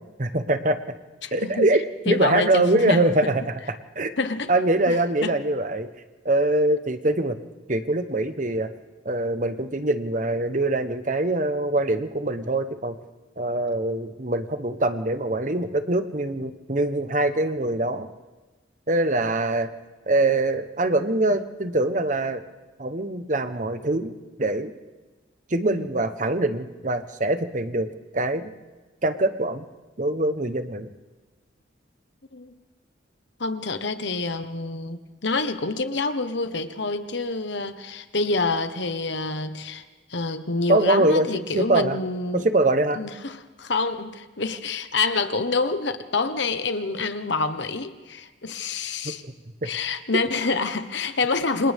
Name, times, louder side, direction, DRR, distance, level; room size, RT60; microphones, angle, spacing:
voice 1, 0.2-0.8 1.3-3.5 3.9-4.1 4.5-5.9 6.2-7.4 7.7-8.7 9.0-12.9 13.4-18.1 18.9-19.7 20.1-22.4 22.8-24.1 24.4-24.7 25.5-27.9 28.1-28.5 29.0-29.7 30.0-30.9 40.7-42.0 42.3-43.0 49.0-49.3 49.6-49.7, right 2 dB, 40° right, 1.1 m, -23 dB
voice 2, 1.2-1.7 2.0-3.3 4.2-4.5 4.9-5.3 21.3-21.4 25.7-25.9 32.3-32.5 33.4-39.8 40.1-42.5 42.9-49.2 49.6-51.7, left 3 dB, 70° left, 1.3 m, -27 dB
29.0 x 26.5 x 3.6 m
head